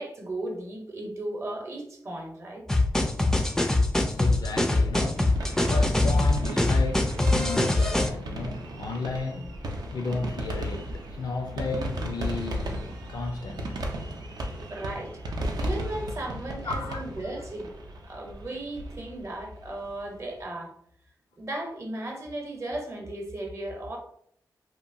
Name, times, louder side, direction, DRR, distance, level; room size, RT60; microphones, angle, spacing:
voice 1, 0.0-2.7 14.7-15.2 15.5-17.7 18.0-20.7 21.4-24.0, right 1 dB, 40° right, 0.7 m, -36 dB
sound 1, 2.7-8.1, left 2 dB, 5° left, 0.3 m, -23 dB
voice 2, 3.7-14.4 16.6-17.1, left 3 dB, 75° left, 0.4 m, -34 dB
sound 2, 5.2-20.1, right 1 dB, 70° right, 0.5 m, -35 dB
2.8 x 2.3 x 2.5 m
cardioid pair, 70°, 7 cm